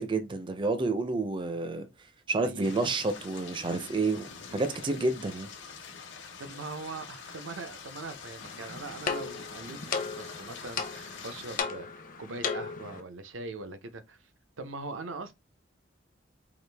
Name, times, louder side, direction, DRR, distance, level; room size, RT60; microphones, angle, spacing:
voice 1, 0.0-1.9 2.3-5.5, right 3 dB, 25° right, 0.4 m, -29 dB
voice 2, 2.3-2.7 6.4-11.9 12.2-14.2 14.6-15.3, right 3 dB, 85° right, 0.6 m, -41 dB
sound 1, 2.6-11.6, left 5 dB, 70° left, 1.0 m, -46 dB
sound 2, 8.4-13.0, left 5 dB, 45° left, 0.6 m, -36 dB
4.9 x 2.4 x 3.3 m
head